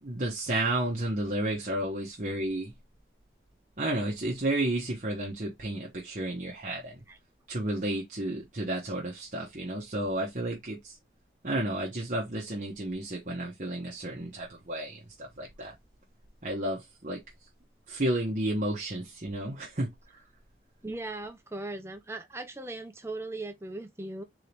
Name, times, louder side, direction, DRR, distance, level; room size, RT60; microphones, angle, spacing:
voice 1, 0.0-2.7 3.8-7.0 7.5-11.0 11.4-15.7 16.4-17.2 17.9-20.2, right 1 dB, 45° right, 1.1 m, -32 dB
voice 2, 20.8-24.2, right 2 dB, 15° right, 0.8 m, -38 dB
4.0 x 3.7 x 3.3 m
head